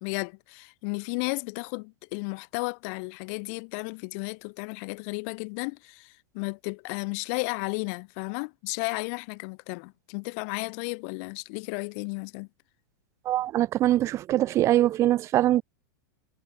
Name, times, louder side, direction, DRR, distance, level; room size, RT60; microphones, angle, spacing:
voice 1, 0.0-12.5, left 36 dB, 45° left, 0.9 m, -33 dB
voice 2, 13.2-15.6, right 14 dB, 25° right, 1.1 m, -23 dB
supercardioid pair, 150°, 11 cm